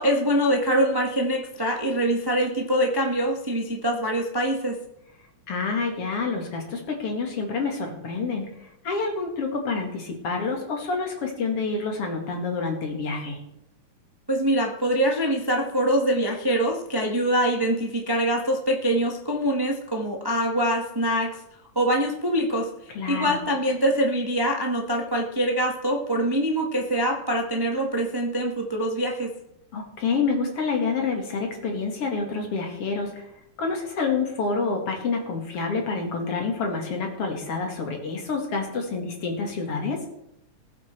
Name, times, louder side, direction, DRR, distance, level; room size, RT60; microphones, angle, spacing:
voice 1, 0.0-4.8 14.3-21.3 21.7-22.7 23.1-29.3, right 1 dB, 15° right, 1 dB, 0.8 m, -24 dB
voice 2, 5.5-8.5 8.8-13.4 22.9-23.4 29.7-33.3 33.6-40.0, left 4 dB, 50° left, 2 dB, 3.0 m, -28 dB
20.0 x 7.7 x 4.6 m, 0.82 s
omnidirectional pair, 3.4 m